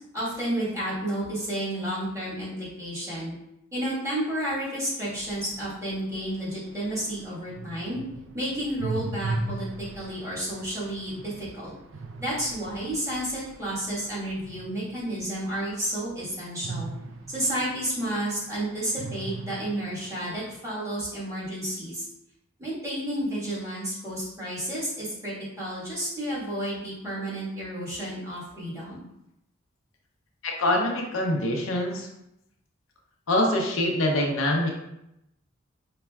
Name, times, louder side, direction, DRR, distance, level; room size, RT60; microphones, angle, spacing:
voice 1, 0.1-3.3 3.7-8.0 8.3-11.7 12.2-16.9 17.3-22.0 22.6-29.0, right 1 dB, 15° right, -9 dB, 1.4 m, -31 dB
sound 1, 5.1-15.3 16.6-18.5 18.9-20.5, right 3 dB, 70° right, 0.4 m, -38 dB
voice 2, 30.4-32.1 33.3-34.8, left 1 dB, 85° left, 0 dB, 0.6 m, -24 dB
4.9 x 2.2 x 2.2 m, 0.83 s
head